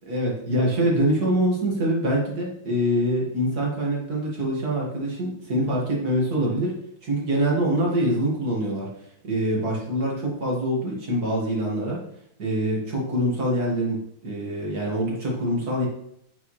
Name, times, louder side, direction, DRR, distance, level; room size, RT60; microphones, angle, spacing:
voice 1, 0.1-6.7 7.0-8.9 9.2-12.0 12.4-14.0 14.2-15.9, right 1 dB, 50° right, -3 dB, 2.3 m, -24 dB
8.4 x 5.9 x 3.2 m, 0.75 s
omnidirectional pair, 2.3 m